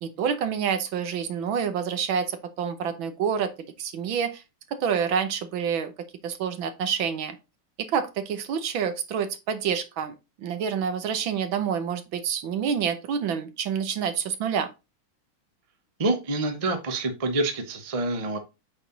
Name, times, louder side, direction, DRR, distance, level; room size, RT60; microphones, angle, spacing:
voice 1, 0.0-3.5 3.8-4.4 4.8-5.9 6.2-7.4 7.8-14.7, right 7 dB, 70° right, 1.7 m, -28 dB
voice 2, 16.0-18.4, right 2 dB, 30° right, 0.7 m, -27 dB
7.9 x 4.3 x 3.9 m
omnidirectional pair, 2.3 m